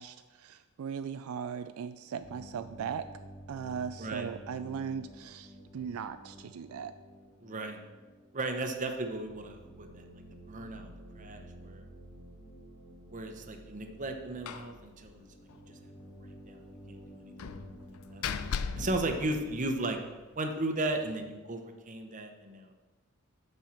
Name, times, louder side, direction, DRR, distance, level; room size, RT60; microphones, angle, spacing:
voice 1, 0.0-3.1 3.5-6.9 18.8-19.0, right 7 dB, 80° right, 11 dB, 0.3 m, -38 dB
sound 1, 2.2-19.5, equal, 55° left, 2.5 m, -52 dB
voice 2, 4.0-4.3 7.4-7.8 8.3-10.0 10.5-10.9 11.1-11.8 13.1-15.2 15.7-15.8 16.2-16.6 16.9-18.4 18.8-20.0 20.4-22.7, right 2 dB, 35° right, 5 dB, 0.9 m, -36 dB
Slam, 14.5-14.8 15.1-15.2 15.5-15.6 17.4-20.0, left 6 dB, 80° left, 0.5 m, -38 dB
7.5 x 5.4 x 7.1 m, 1.3 s
head